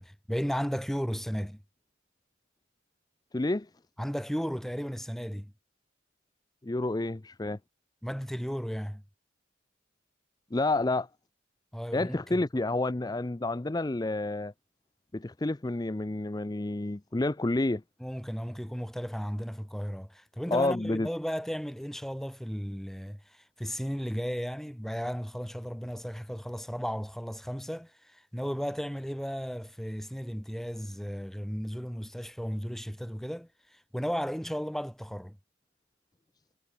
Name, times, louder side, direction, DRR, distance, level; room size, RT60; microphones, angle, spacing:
voice 1, 0.0-1.6 4.0-5.5 8.0-9.0 11.7-12.4 18.0-35.4, equal, ahead, 2.4 m, -35 dB
voice 2, 3.3-3.7 6.6-7.6 10.5-11.1 11.9-14.5 15.1-17.8 20.5-21.1, left 2 dB, 20° left, 0.5 m, -29 dB
head